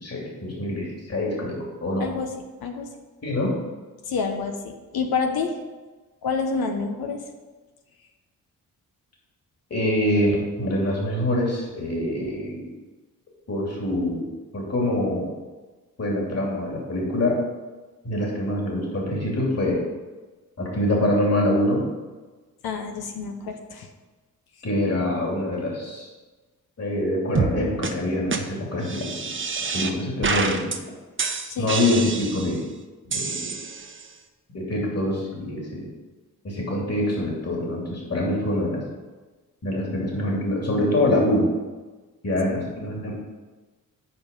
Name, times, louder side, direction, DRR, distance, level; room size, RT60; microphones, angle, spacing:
voice 1, 0.0-2.1 3.2-3.5 9.7-12.7 13.5-14.3 14.5-15.3 16.0-17.4 18.0-19.8 20.6-21.8 24.6-26.1 26.8-29.1 29.7-30.7 31.6-32.6 33.1-33.6 34.5-35.9 36.4-38.8 39.6-41.5 42.2-43.1, left 1 dB, 45° left, -3 dB, 2.9 m, -25 dB
voice 2, 2.0-2.3 2.6-2.9 4.0-5.6 6.2-7.2 22.6-23.9 31.5-31.8 42.5-42.6, left 5 dB, 85° left, 4 dB, 1.0 m, -28 dB
sound 1, 27.4-27.6 27.8-27.9 28.3-28.4 28.8-29.9 30.2-30.8 31.2-32.6 33.1-34.1, right 5 dB, 35° right, 0.9 m, -27 dB
8.9 x 5.2 x 5.3 m, 1.3 s
cardioid pair, 70°, 36 cm